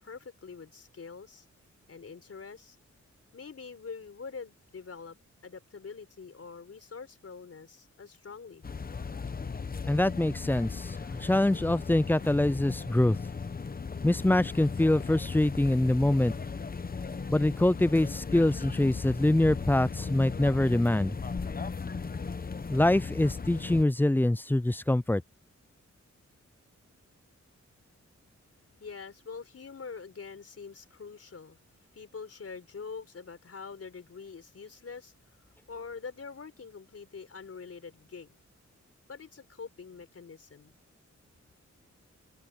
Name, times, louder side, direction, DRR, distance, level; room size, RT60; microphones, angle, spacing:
voice 1, 0.0-1.5 1.9-2.8 3.3-5.2 5.4-8.6 28.8-31.6 31.9-35.1 35.7-38.4 39.1-40.8, left 5 dB, 55° left, 4.2 m, -44 dB
sound 1, 8.6-23.8, left 5 dB, 30° left, 0.8 m, -37 dB
voice 2, 9.8-13.2 14.0-16.3 17.3-21.2 22.7-25.2, left 1 dB, 5° left, 0.4 m, -25 dB
wide cardioid pair, 130°, 29 cm